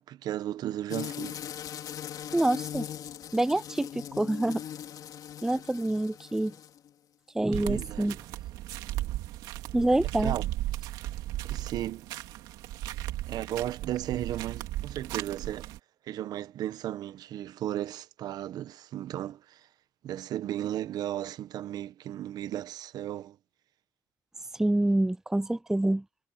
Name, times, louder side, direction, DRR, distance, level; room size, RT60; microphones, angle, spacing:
voice 1, 0.0-1.4 7.6-8.1 10.2-10.4 11.4-12.1 13.3-15.7 16.1-19.7 20.0-23.4, right 12 dB, 75° right, 1.0 m, -35 dB
sound 1, 0.9-6.9, left 10 dB, 65° left, 3.8 m, -40 dB
voice 2, 2.3-2.8 3.3-4.6 5.4-6.5 7.3-8.2 9.7-10.3 24.5-26.0, right 1 dB, 5° right, 0.4 m, -26 dB
sound 2, 7.5-15.8, right 15 dB, 90° right, 2.9 m, -36 dB
cardioid pair, 80°, 7 cm